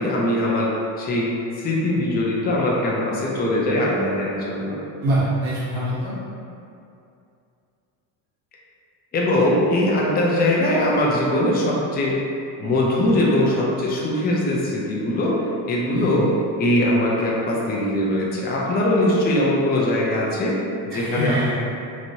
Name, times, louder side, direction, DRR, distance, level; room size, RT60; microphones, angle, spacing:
voice 1, 0.0-4.8 9.1-12.2 12.6-21.5, left 1 dB, 25° left, -4 dB, 0.5 m, -21 dB
voice 2, 5.0-6.1 15.9-16.3 20.9-21.5, right 1 dB, 65° right, -9 dB, 1.2 m, -24 dB
3.0 x 2.6 x 2.7 m, 2.5 s
cardioid pair, 120°, 41 cm